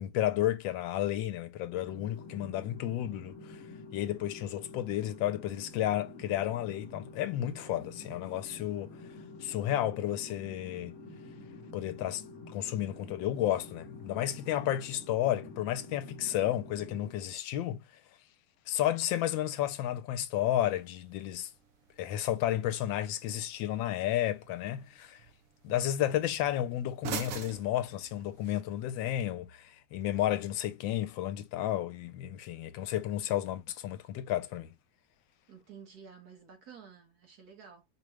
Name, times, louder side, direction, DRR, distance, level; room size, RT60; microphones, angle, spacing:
voice 1, 0.0-3.6 3.9-9.0 9.4-11.0 11.7-17.8 18.7-21.5 22.0-25.2 25.6-34.7, left 12 dB, 85° left, 1.3 m, -32 dB
sound 1, 1.7-17.1, left 2 dB, 45° left, 1.0 m, -48 dB
sound 2, 20.6-28.6, right 7 dB, 75° right, 0.7 m, -47 dB
voice 2, 35.5-37.8, right 6 dB, 55° right, 1.6 m, -52 dB
5.0 x 2.3 x 3.0 m
omnidirectional pair, 2.0 m